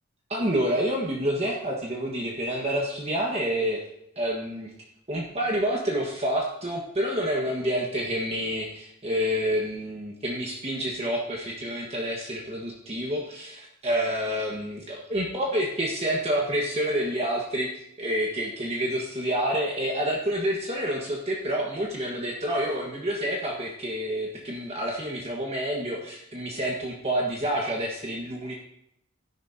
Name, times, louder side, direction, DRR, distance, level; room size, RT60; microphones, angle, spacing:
voice 1, 0.3-3.8 4.2-4.7 5.1-28.5, equal, 30° right, -2 dB, 1.4 m, -28 dB
13.0 x 11.0 x 2.8 m, 0.76 s
head